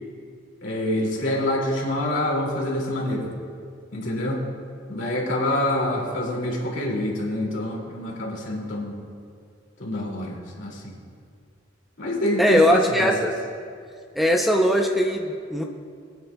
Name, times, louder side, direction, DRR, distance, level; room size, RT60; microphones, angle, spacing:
voice 1, 0.6-3.3 3.9-4.4 4.9-8.9 9.8-11.0 12.0-13.1, left 1 dB, 65° left, -2 dB, 2.3 m, -26 dB
voice 2, 12.4-13.3 14.2-15.6, equal, ahead, 2 dB, 0.5 m, -20 dB
22.5 x 8.9 x 2.2 m, 2.2 s
head